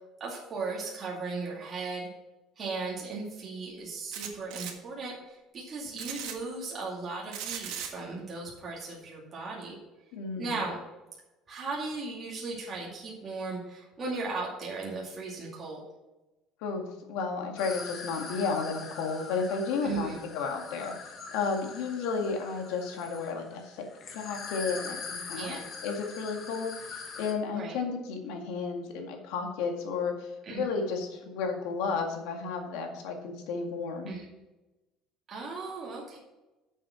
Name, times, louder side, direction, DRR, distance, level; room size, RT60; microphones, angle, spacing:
voice 1, 0.2-2.1 2.6-9.8 10.4-10.8 11.5-15.8 19.8-20.2 25.4-25.6 27.5-27.8 30.5-30.6 34.1-34.3 35.3-36.2, right 3 dB, 25° right, -4 dB, 2.3 m, -37 dB
sound 1, 4.1-4.7 6.0-6.3 7.3-7.9, right 9 dB, 70° right, 1.6 m, -37 dB
voice 2, 10.1-10.6 16.6-20.1 20.3-23.9 24.1-34.1, left 5 dB, 90° left, 2 dB, 2.0 m, -33 dB
sound 2, 17.6-27.3, left 4 dB, 30° left, 1.3 m, -43 dB
8.5 x 7.2 x 5.7 m, 1.0 s
cardioid pair, 165°, 0 cm